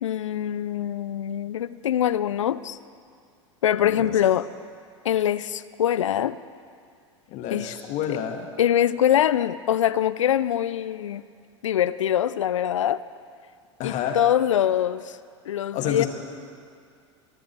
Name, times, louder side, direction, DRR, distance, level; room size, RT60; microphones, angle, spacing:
voice 1, 0.0-2.8 3.6-4.5 5.0-6.4 7.5-7.7 8.1-8.2 8.6-11.2 11.6-13.0 13.8-15.2 15.5-16.1, left 10 dB, 80° left, 17 dB, 0.5 m, -23 dB
voice 2, 3.8-4.1 7.3-8.5 13.8-14.2 15.7-16.1, left 9 dB, 50° left, 4 dB, 2.0 m, -29 dB
23.0 x 11.5 x 4.7 m, 2.2 s
hypercardioid pair, 95°, 16 cm